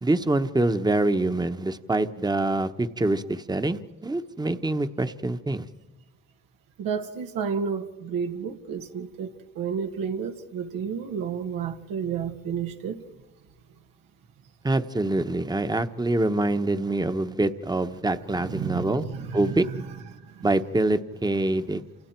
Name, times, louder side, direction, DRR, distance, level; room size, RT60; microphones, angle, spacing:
voice 1, 0.0-5.6 14.6-19.0 19.3-19.6 20.4-21.8, right 2 dB, 10° right, 1.1 m, -25 dB
voice 2, 6.8-9.3 9.6-13.0 18.4-20.0, right 6 dB, 90° right, 2.0 m, -31 dB
29.0 x 28.0 x 4.6 m
cardioid pair, 75°, 34 cm